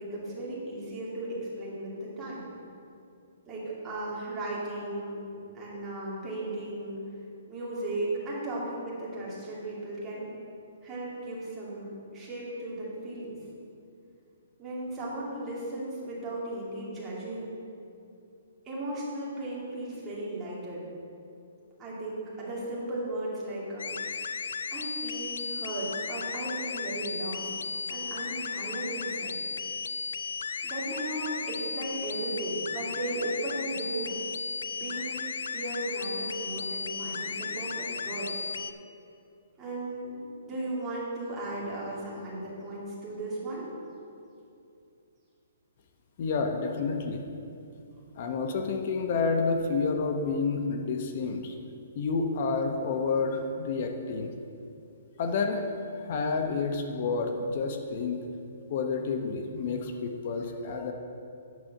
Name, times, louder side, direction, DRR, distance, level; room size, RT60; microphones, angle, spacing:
voice 1, 0.0-2.5 3.5-5.2 5.5-7.0 7.5-10.3 10.8-13.4 14.6-17.5 18.6-20.9 21.8-24.0 24.7-27.5 27.9-29.4 30.6-34.2 34.7-35.2 35.5-38.5 39.6-43.7, right 1 dB, 15° right, -7 dB, 2.9 m, -36 dB
sound 1, 23.8-38.7, left 5 dB, 85° left, 0.5 m, -35 dB
voice 2, 46.2-47.2 48.2-51.5 51.9-54.3 55.2-55.7 55.9-58.2 58.7-60.9, left 4 dB, 40° left, 4 dB, 0.9 m, -29 dB
9.4 x 7.3 x 6.4 m, 2.5 s
hypercardioid pair, 165°, 0 cm